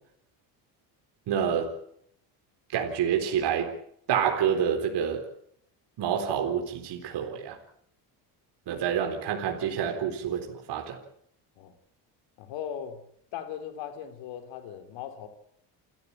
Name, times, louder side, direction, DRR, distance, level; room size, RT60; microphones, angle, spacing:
voice 1, 1.3-1.8 2.7-3.7 4.1-5.3 6.0-7.6 8.7-11.0, right 8 dB, 60° right, 4.1 m, -28 dB
voice 2, 12.4-13.0 13.3-15.3, left 9 dB, 75° left, 4.0 m, -38 dB
29.0 x 13.5 x 8.9 m
supercardioid pair, 95°, 45 cm